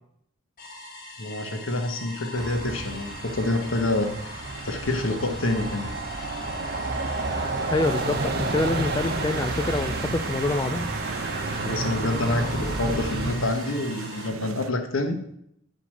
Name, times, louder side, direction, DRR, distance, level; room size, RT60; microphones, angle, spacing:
sound 1, 0.6-14.3, left 1 dB, 40° left, 1.9 m, -42 dB
voice 1, 1.2-4.1 4.6-5.9 11.5-15.2, left 2 dB, 60° left, 5 dB, 1.4 m, -27 dB
sound 2, 2.4-13.3, right 3 dB, 50° right, 1.1 m, -31 dB
voice 2, 7.7-10.9, left 2 dB, 20° left, 8 dB, 0.3 m, -26 dB
sound 3, 7.8-14.7, right 4 dB, 70° right, 0.6 m, -36 dB
8.1 x 5.2 x 7.6 m, 0.73 s
head